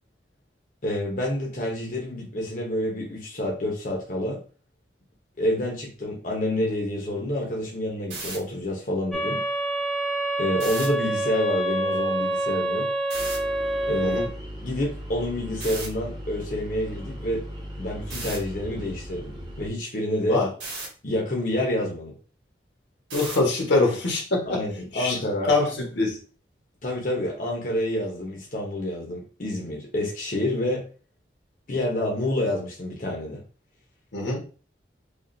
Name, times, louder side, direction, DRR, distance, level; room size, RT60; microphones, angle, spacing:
voice 1, 0.8-4.4 5.4-9.4 10.4-12.9 13.9-14.2 14.6-17.5 17.8-20.4 21.0-22.1 24.5-25.5 26.8-30.8 31.7-33.4, left 1 dB, 45° left, -1 dB, 0.8 m, -28 dB
sound 1, 8.0-8.4 10.5-10.9 13.1-13.4 15.6-15.9 18.1-18.4 20.6-20.9 23.1-23.5, right 3 dB, 85° right, 1.6 m, -34 dB
sound 2, 9.1-14.3, right 1 dB, 5° left, 0.5 m, -27 dB
sound 3, 13.1-19.7, equal, 25° right, 1.0 m, -38 dB
voice 2, 23.1-24.6 24.9-25.2 25.5-26.2 34.1-34.4, left 2 dB, 85° left, 0 dB, 1.3 m, -23 dB
5.0 x 2.4 x 2.6 m, 0.38 s
head